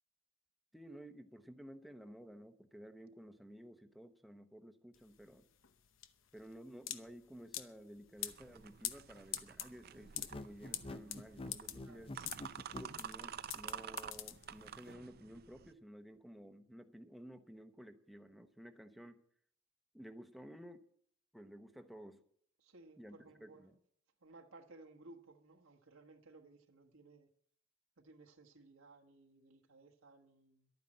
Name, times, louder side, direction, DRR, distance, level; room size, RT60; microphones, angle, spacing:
voice 1, 0.7-5.4 6.3-12.1 12.7-19.2 19.9-20.9 21.3-22.2 23.0-23.2 23.4-23.7, equal, ahead, 7 dB, 0.9 m, -54 dB
sound 1, 4.9-14.9, left 12 dB, 70° left, 0.9 m, -45 dB
sound 2, 8.2-15.7, right 8 dB, 50° right, 0.5 m, -50 dB
sound 3, 10.1-12.9, left 2 dB, 25° left, 0.5 m, -47 dB
voice 2, 11.8-12.1 22.6-23.8 24.2-27.3 28.0-30.7, right 2 dB, 85° right, 3 dB, 1.5 m, -59 dB
12.0 x 9.4 x 7.7 m, 0.63 s
head